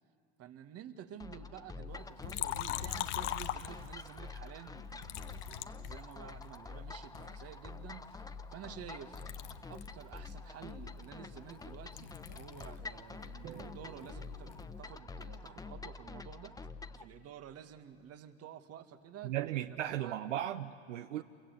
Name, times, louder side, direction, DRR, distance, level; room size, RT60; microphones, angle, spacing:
voice 1, 0.4-9.2 9.7-16.7 17.0-19.7 20.0-20.2 21.1-21.2, right 9 dB, 40° right, 9 dB, 1.9 m, -51 dB
sound 1, 1.2-17.0, left 4 dB, 10° left, 1.0 m, -47 dB
Liquid, 2.2-4.2 5.0-6.6 7.1-8.9 9.1-12.8 13.1-14.7, left 12 dB, 70° left, 1.3 m, -42 dB
Drum, 13.4-15.6, right 8 dB, 55° right, 3.5 m, -53 dB
voice 2, 19.2-21.2, right 12 dB, 75° right, 11 dB, 0.9 m, -36 dB
28.0 x 24.5 x 8.2 m, 2.5 s
hypercardioid pair, 85°, 37 cm